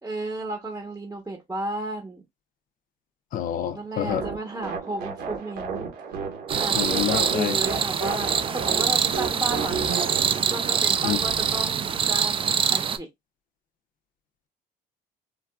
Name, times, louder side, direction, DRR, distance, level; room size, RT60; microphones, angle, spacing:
voice 1, 0.0-2.2 3.7-5.9 6.6-6.8 7.1-10.1 10.5-13.1, right 2 dB, 15° right, 0.8 m, -33 dB
voice 2, 3.3-4.2 6.7-7.6 11.0-11.2, left 10 dB, 55° left, 0.5 m, -27 dB
sound 1, 4.1-11.5, right 5 dB, 85° right, 1.1 m, -33 dB
sound 2, 6.5-13.0, right 7 dB, 30° right, 0.4 m, -25 dB
3.7 x 2.4 x 2.2 m
cardioid pair, 110°, 17 cm